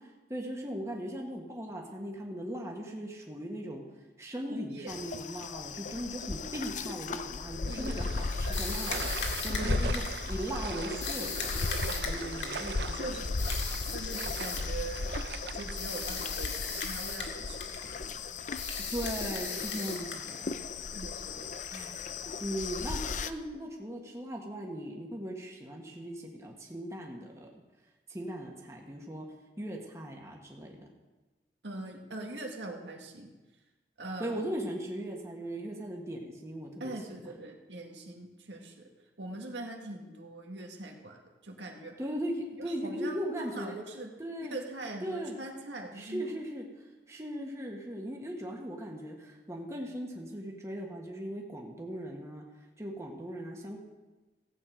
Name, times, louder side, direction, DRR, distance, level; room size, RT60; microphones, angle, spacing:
voice 1, 0.3-3.8 4.2-10.0 10.3-11.6 12.0-13.1 17.4-17.5 18.9-20.6 21.7-22.0 22.4-27.5 28.1-29.3 29.6-30.8 34.2-37.0 42.0-43.8 44.2-44.6 45.0-45.4 45.9-46.7 47.1-52.4 52.8-53.8, equal, 15° right, -1 dB, 1.5 m, -38 dB
voice 2, 4.5-4.9 7.6-8.2 9.5-10.3 11.9-13.4 13.9-15.1 15.5-18.2 20.9-21.5 31.6-33.3 34.0-34.5 36.8-38.9 39.2-41.2 41.4-41.9 42.6-44.1 44.5-46.3, right 2 dB, 85° right, 1 dB, 1.8 m, -42 dB
sound 1, 4.9-23.3, left 4 dB, 45° left, 0.5 m, -36 dB
sound 2, 7.7-16.1, right 6 dB, 65° right, 0.5 m, -41 dB
sound 3, 8.5-10.3 11.0-12.7 13.4-14.8 15.8-17.4 17.6-17.9 18.6-20.5, left 5 dB, 85° left, 2.1 m, -37 dB
15.5 x 8.5 x 5.1 m, 1.2 s
head